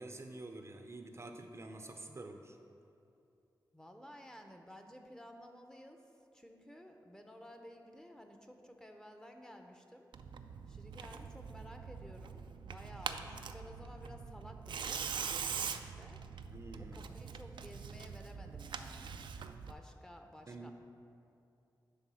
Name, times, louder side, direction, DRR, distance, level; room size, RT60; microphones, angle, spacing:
voice 1, 0.0-2.6 16.5-17.0 20.5-20.7, right 2 dB, 35° right, 5 dB, 0.5 m, -48 dB
voice 2, 3.7-6.0 6.3-10.1 10.7-16.2 16.8-19.4 19.6-20.7, equal, 10° left, 4 dB, 0.7 m, -54 dB
Tearing, 10.1-19.7, right 6 dB, 90° right, 0.4 m, -43 dB
11.0 x 3.7 x 6.2 m, 2.7 s
wide cardioid pair, 105°, 8 cm